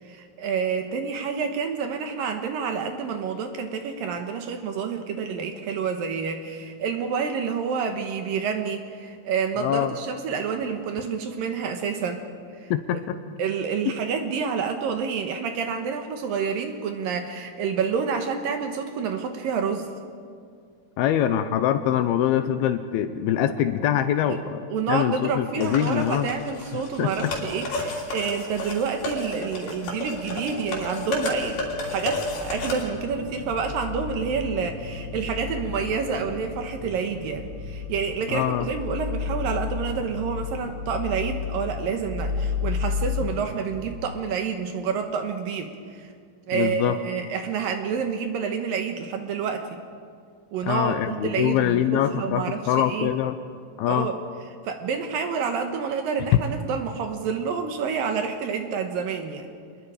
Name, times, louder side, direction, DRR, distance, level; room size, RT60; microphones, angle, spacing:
voice 1, 0.0-12.2 12.6-13.0 13.4-19.9 24.3-24.4 24.7-46.1 46.5-49.8 50.5-53.1 53.9-54.2 54.6-59.5, right 6 dB, 70° right, 6 dB, 2.5 m, -28 dB
voice 2, 9.6-9.9 12.7-13.2 21.0-24.6 24.9-26.3 27.0-27.3 38.3-38.7 46.5-47.0 50.6-53.4 53.8-54.1, left 11 dB, 80° left, 10 dB, 2.5 m, -24 dB
sound 1, 25.6-32.8, left 2 dB, 55° left, 4.5 m, -32 dB
sound 2, 30.1-44.0, left 5 dB, 10° right, 3.8 m, -33 dB
27.5 x 21.0 x 5.0 m, 2.2 s
omnidirectional pair, 4.8 m